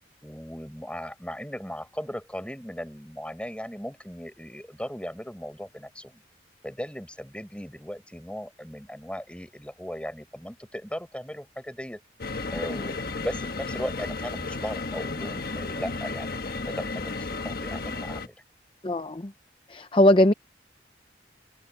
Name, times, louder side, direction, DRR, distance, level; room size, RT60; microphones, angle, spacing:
voice 1, 0.2-6.2 6.6-12.0 12.5-16.3 16.6-18.4, equal, 5° left, 6.4 m, -37 dB
sound 1, 12.2-18.3, left 3 dB, 55° left, 1.3 m, -33 dB
voice 2, 18.8-19.3 19.7-20.3, left 1 dB, 30° left, 0.7 m, -20 dB
open air
head